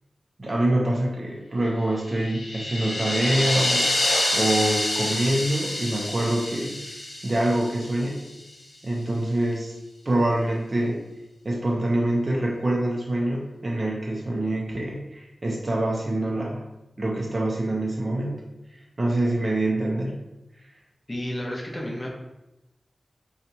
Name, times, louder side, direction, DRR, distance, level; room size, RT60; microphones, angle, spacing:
voice 1, 0.4-3.9 4.3-8.2 8.8-9.8 10.1-11.0 11.4-16.6 17.0-18.4 19.0-20.2, right 1 dB, 40° right, -2 dB, 0.6 m, -25 dB
sound 1, 2.0-8.3, left 1 dB, 80° left, 0.6 m, -27 dB
voice 2, 21.1-22.1, left 1 dB, 30° left, -3 dB, 0.9 m, -31 dB
2.8 x 2.4 x 4.1 m, 0.94 s
wide cardioid pair, 70°, 0 cm